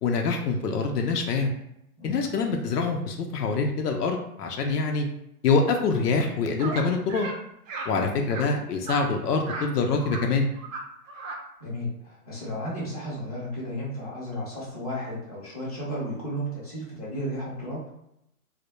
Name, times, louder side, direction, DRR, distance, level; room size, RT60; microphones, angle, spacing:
voice 1, 0.0-1.5 2.0-5.1 5.4-7.3 7.9-10.5, left 4 dB, 85° left, 3 dB, 0.6 m, -25 dB
sound 1, 6.6-6.8 7.1-7.4 7.7-7.9 8.3-8.4 8.9-9.0 9.4-9.7 10.0-10.2 10.5-10.8 11.1-11.4, right 3 dB, 60° right, 0.6 m, -35 dB
voice 2, 11.6-17.8, equal, 25° left, -6 dB, 0.5 m, -33 dB
2.1 x 2.0 x 2.9 m, 0.81 s
hypercardioid pair, 160°, 45 cm